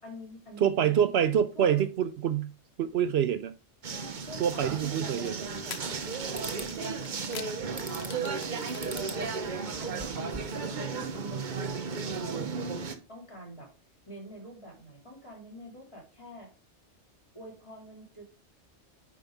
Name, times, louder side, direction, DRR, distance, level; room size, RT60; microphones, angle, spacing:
voice 1, 0.0-1.1 1.5-1.8 4.3-13.7 14.1-16.5 17.3-18.2, right 1 dB, 25° left, 3.5 m, -47 dB
voice 2, 0.6-2.5 2.8-3.5 4.4-5.5, right 9 dB, 65° right, 0.8 m, -26 dB
sound 1, 3.8-12.9, right 4 dB, 45° right, 0.9 m, -34 dB
sound 2, 4.6-4.7 5.6-10.0, left 8 dB, 65° left, 1.0 m, -46 dB
sound 3, 5.4-6.0 6.3-6.7 7.8-8.3 8.8-9.2 9.6-10.7, right 2 dB, 15° right, 1.1 m, -43 dB
9.4 x 5.3 x 3.4 m
omnidirectional pair, 1.2 m